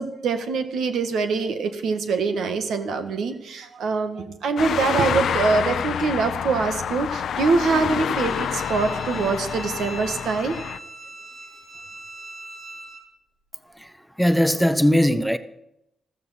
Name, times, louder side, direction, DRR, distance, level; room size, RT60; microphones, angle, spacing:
voice 1, 0.0-10.6, right 4 dB, 85° right, 1.7 m, -24 dB
sound 1, 4.6-10.8, left 8 dB, 75° left, 0.6 m, -27 dB
Bowed string instrument, 8.1-13.0, right 2 dB, 60° right, 4.7 m, -41 dB
voice 2, 14.2-15.4, equal, ahead, 0.9 m, -19 dB
14.5 x 13.5 x 5.8 m
cardioid pair, 80°, 0 cm